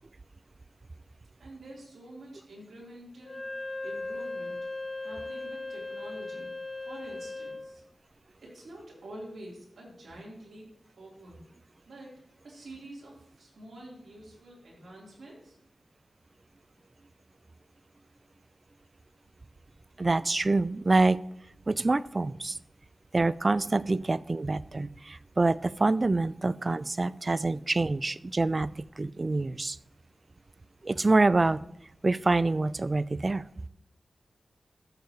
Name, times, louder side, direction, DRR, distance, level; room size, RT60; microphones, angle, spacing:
voice 1, 1.4-3.4 3.8-6.5 6.9-7.8 8.4-10.7 11.0-11.4 11.9-12.1 12.4-15.6, right 1 dB, 85° right, -4 dB, 3.8 m, -47 dB
Wind instrument woodwind instrument, 3.2-7.7, left 2 dB, 40° left, 1.7 m, -37 dB
voice 2, 20.0-21.2 21.7-22.6 23.1-29.8 30.8-31.6 32.0-33.4, right 2 dB, 40° right, 18 dB, 0.3 m, -26 dB
13.5 x 7.1 x 3.1 m, 0.82 s
wide cardioid pair, 65°, 0 cm